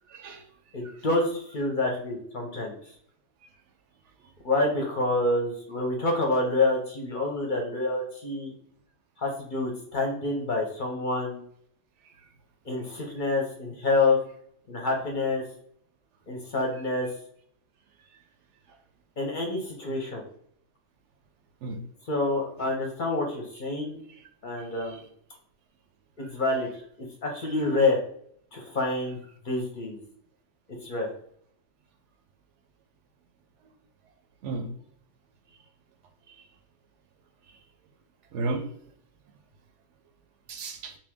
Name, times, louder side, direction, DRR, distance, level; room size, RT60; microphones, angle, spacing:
voice 1, 0.1-0.4 21.6-21.8 22.6-22.7 24.7-25.0 34.4-34.7 36.3-36.4 38.3-38.6 40.5-40.9, right 3 dB, 75° right, 5 dB, 0.9 m, -34 dB
voice 2, 0.7-2.7 4.4-8.5 9.2-11.4 12.7-14.2 14.7-15.4 16.3-17.1 19.2-20.2 22.1-24.0 24.4-25.0 26.2-26.7 27.2-28.0 28.5-30.0 30.8-31.1, left 2 dB, 50° left, 0 dB, 0.7 m, -27 dB
2.9 x 2.6 x 3.5 m, 0.64 s
omnidirectional pair, 1.2 m